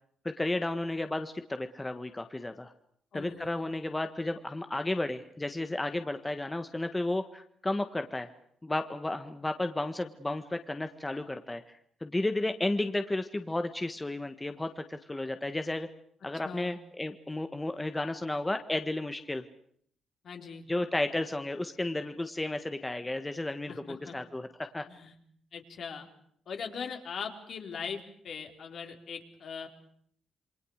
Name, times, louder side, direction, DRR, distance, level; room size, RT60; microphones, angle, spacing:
voice 1, 0.2-2.7 3.1-8.3 8.6-11.8 12.0-15.9 16.2-19.4 20.7-24.8, left 2 dB, 15° left, 7 dB, 1.5 m, -33 dB
voice 2, 3.1-3.8 16.4-16.8 20.2-20.6 23.7-24.2 24.9-25.2 25.5-26.1 26.5-29.7, left 6 dB, 60° left, 4 dB, 4.1 m, -40 dB
28.0 x 24.0 x 6.5 m, 0.64 s
cardioid pair, 105°, 0 cm